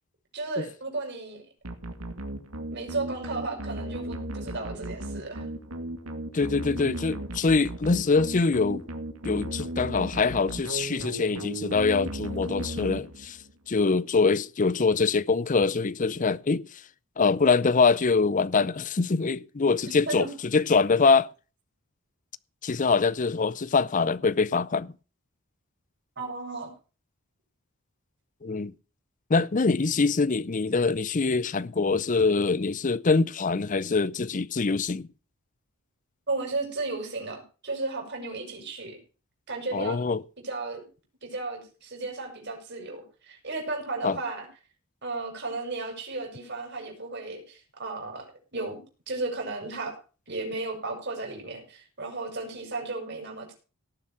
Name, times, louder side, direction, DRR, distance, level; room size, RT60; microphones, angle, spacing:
voice 1, 0.3-1.4 2.7-5.5 19.9-20.3 26.2-26.7 36.3-39.0 39.5-40.0 40.4-40.8 41.2-44.5 45.0-48.8 49.1-49.9 50.3-53.5, right 3 dB, 50° right, 6.1 m, -34 dB
sound 1, 1.6-13.5, right 1 dB, 80° right, 2.3 m, -36 dB
voice 2, 6.3-8.9 9.2-13.4 13.7-16.7 17.2-20.3 20.5-21.3 22.6-24.9 28.4-28.7 29.3-35.1 39.7-40.2 44.0-44.2, left 4 dB, 35° left, 0.5 m, -24 dB
18.5 x 7.4 x 5.7 m
head